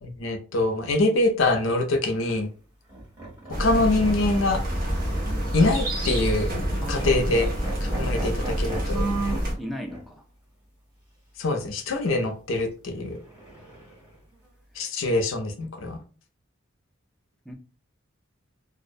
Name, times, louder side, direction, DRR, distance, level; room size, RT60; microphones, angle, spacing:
voice 1, 0.0-2.5 3.6-4.6 5.5-6.5 6.9-7.5 7.8-9.0 11.4-13.2 14.8-16.0, left 2 dB, 70° left, 0.5 m, -24 dB
sound 1, 2.0-2.3 2.9-5.8 6.1-6.3 6.6-6.8 7.0-9.5 9.9-10.0 13.2-14.1, right 3 dB, 20° right, 1.2 m, -36 dB
sound 2, 3.5-9.5, equal, 45° right, 0.8 m, -27 dB
voice 2, 6.8-7.3 9.6-10.2 17.5-17.6, equal, ahead, 0.3 m, -36 dB
2.4 x 2.1 x 2.5 m
head